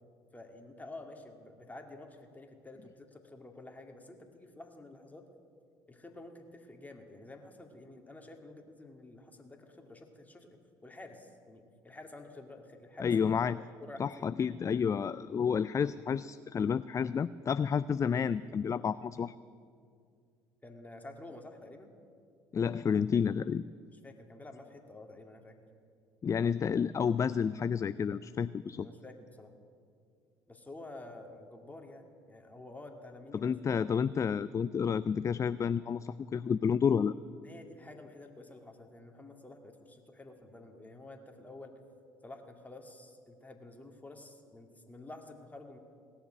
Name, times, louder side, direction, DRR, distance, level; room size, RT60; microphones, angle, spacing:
voice 1, 0.3-5.3 5.9-13.1 13.4-14.3 20.6-21.9 24.0-25.6 28.8-29.5 30.5-33.5 37.4-41.8 42.2-45.8, left 2 dB, 15° left, 4 dB, 2.2 m, -50 dB
voice 2, 13.0-13.6 14.0-19.3 22.5-23.6 26.2-28.9 33.3-37.1, left 7 dB, 30° left, 16 dB, 0.3 m, -30 dB
18.0 x 7.1 x 9.9 m, 2.3 s
hypercardioid pair, 65°, 11 cm